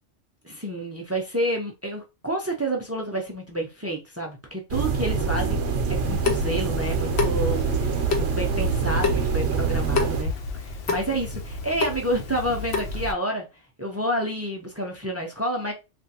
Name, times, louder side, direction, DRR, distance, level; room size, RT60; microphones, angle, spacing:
voice 1, 0.4-13.5 13.8-15.7, right 1 dB, 25° right, 0.3 m, -29 dB
sound 1, 4.7-10.2, right 5 dB, 65° right, 0.9 m, -25 dB
Water tap faucet / Sink (filling or washing) / Drip, 6.0-13.1, left 3 dB, 65° left, 0.9 m, -30 dB
3.3 x 2.4 x 2.7 m
omnidirectional pair, 1.3 m